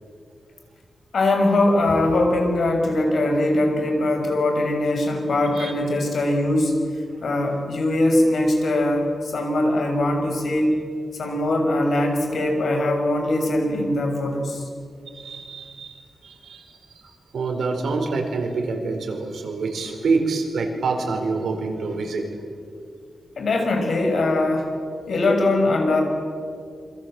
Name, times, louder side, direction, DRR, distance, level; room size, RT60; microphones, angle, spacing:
voice 1, 1.1-6.8 7.2-10.8 11.2-14.7 23.4-24.7 25.1-26.0, left 1 dB, 65° left, 3 dB, 6.4 m, -21 dB
voice 2, 5.5-6.1 9.5-9.6 15.1-22.4, right 4 dB, 85° right, 3 dB, 5.1 m, -27 dB
28.0 x 26.0 x 8.0 m, 2.3 s
wide cardioid pair, 150°, 0 cm